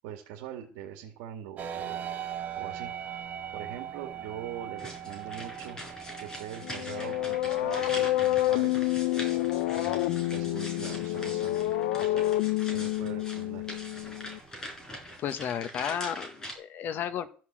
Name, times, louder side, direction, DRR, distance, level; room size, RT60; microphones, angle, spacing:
voice 1, 0.0-2.1 2.6-2.9 3.5-5.8 6.2-8.9 9.7-12.2 12.7-13.6, right 10 dB, 80° right, 2 dB, 2.3 m, -42 dB
sound 1, 1.6-15.2, right 9 dB, 35° right, 1.5 m, -42 dB
sound 2, 4.8-16.5, equal, 15° left, 4.9 m, -43 dB
sound 3, 6.6-14.4, left 16 dB, 85° left, 0.7 m, -28 dB
voice 2, 15.2-17.3, left 9 dB, 45° left, 11 dB, 1.4 m, -33 dB
14.0 x 6.2 x 7.6 m, 0.41 s
cardioid pair, 145°, 5 cm